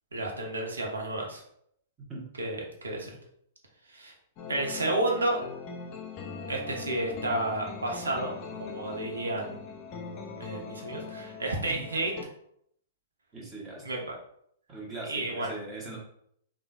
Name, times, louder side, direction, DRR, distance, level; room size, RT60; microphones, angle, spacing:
voice 1, 0.1-1.4 2.4-3.1 3.9-4.1 4.5-5.4 6.5-8.3 8.6-9.6 10.4-12.1 13.8-14.0 15.1-15.5, right 2 dB, 80° right, 0 dB, 0.9 m, -31 dB
sound 1, 4.4-12.2, left 5 dB, 40° left, 0.6 m, -41 dB
voice 2, 13.3-13.9 14.7-16.0, right 2 dB, 20° right, -4 dB, 1.4 m, -40 dB
3.6 x 2.5 x 2.5 m, 0.70 s
hypercardioid pair, 110°, 0 cm